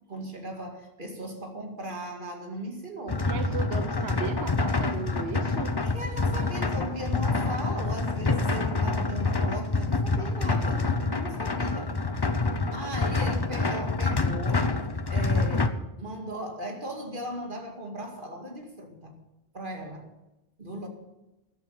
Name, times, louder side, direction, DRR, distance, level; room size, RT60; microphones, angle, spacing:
voice 1, 0.1-3.3 5.8-11.9 12.7-14.7 15.1-19.2 19.5-20.1 20.6-20.9, right 1 dB, 55° right, 2 dB, 2.4 m, -37 dB
sound 1, 3.1-15.7, left 3 dB, 25° left, 0.7 m, -27 dB
voice 2, 3.2-5.8, right 6 dB, 75° right, 6 dB, 1.1 m, -35 dB
13.5 x 11.0 x 5.7 m, 0.99 s
omnidirectional pair, 1.1 m